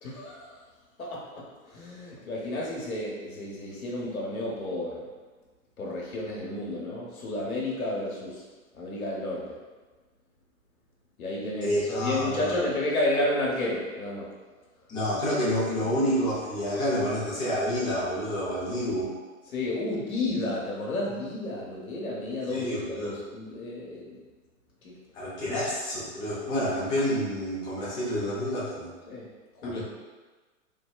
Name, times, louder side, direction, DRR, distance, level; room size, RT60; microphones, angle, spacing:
voice 1, 0.0-0.6 1.0-1.2 1.7-5.1 5.8-8.4 8.7-9.6 11.2-14.3 19.5-24.2 24.8-24.9 25.5-25.6 29.1-29.3 29.6-29.8, left 2 dB, 85° left, -4 dB, 0.9 m, -31 dB
voice 2, 11.6-12.6 14.9-19.1 22.5-23.2 25.1-28.9 29.6-29.8, equal, 10° left, -8 dB, 0.4 m, -28 dB
2.6 x 2.1 x 2.3 m, 1.3 s
hypercardioid pair, 115°, 41 cm